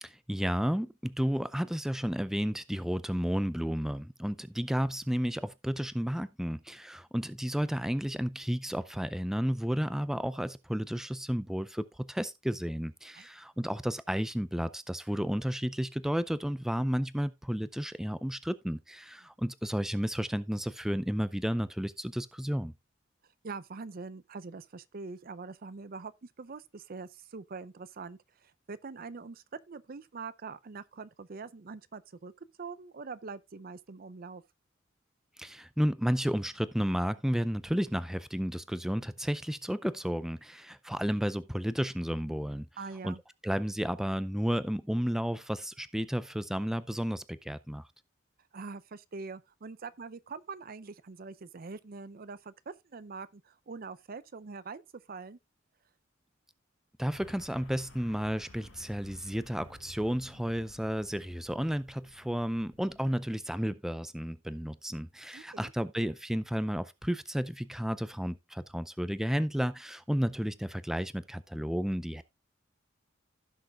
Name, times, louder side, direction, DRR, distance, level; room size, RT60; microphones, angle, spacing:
voice 1, 0.0-22.7 35.4-42.7 43.0-43.1 43.4-47.9 57.0-72.2, equal, ahead, 0.4 m, -32 dB
voice 2, 23.4-34.4 42.8-43.2 48.5-54.8 55.1-55.4 65.3-65.7, right 4 dB, 50° right, 0.6 m, -44 dB
sound 1, 57.1-63.1, left 1 dB, 90° left, 2.6 m, -54 dB
16.0 x 6.4 x 2.4 m
head